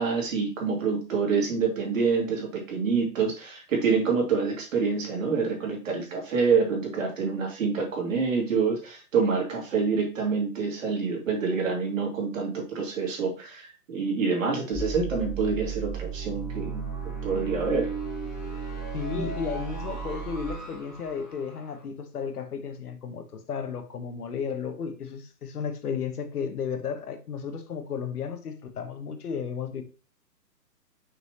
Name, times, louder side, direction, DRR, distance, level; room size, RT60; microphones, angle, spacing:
voice 1, 0.0-16.8 17.2-17.9 19.1-19.3, right 5 dB, 50° right, 2.7 m, -27 dB
sound 1, 14.7-21.7, right 5 dB, ahead, 1.6 m, -35 dB
voice 2, 18.9-29.8, left 6 dB, 65° left, 1.4 m, -33 dB
6.1 x 5.5 x 3.1 m
hypercardioid pair, 165°, 49 cm